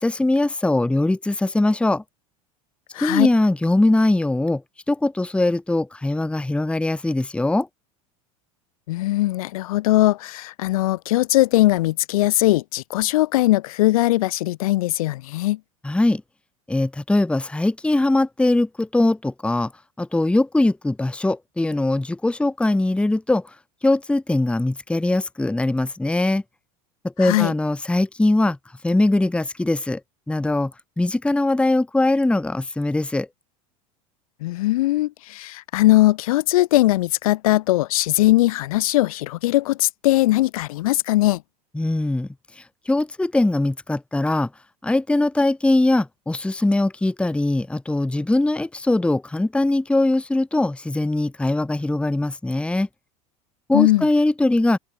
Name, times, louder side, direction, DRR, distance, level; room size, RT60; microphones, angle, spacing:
voice 1, 0.0-2.0 3.0-4.6 4.9-7.7 15.8-16.2 16.7-19.7 20.0-23.5 23.8-26.4 27.0-28.6 28.8-30.0 30.3-30.7 31.0-33.3 41.7-42.3 42.6-44.5 44.8-52.9 53.7-54.8, left 2 dB, 5° left, 0.9 m, -21 dB
voice 2, 2.9-3.3 8.9-15.6 27.2-27.5 34.4-41.4 53.7-54.1, left 17 dB, 80° left, 2.2 m, -20 dB
open air
hypercardioid pair, 90°, 18 cm